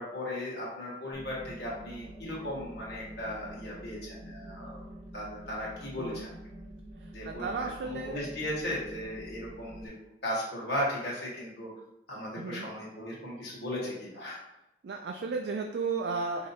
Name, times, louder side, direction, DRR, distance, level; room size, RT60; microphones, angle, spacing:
voice 1, 0.0-4.8 5.1-6.3 7.1-9.9 10.2-11.7 12.1-14.4, left 1 dB, 60° left, -5 dB, 1.5 m, -36 dB
sound 1, 1.1-9.9, right 1 dB, 40° right, 0.7 m, -47 dB
voice 2, 7.0-8.3 12.4-12.7 14.8-16.5, right 4 dB, 65° right, 3 dB, 0.3 m, -34 dB
4.8 x 2.7 x 2.7 m, 0.87 s
head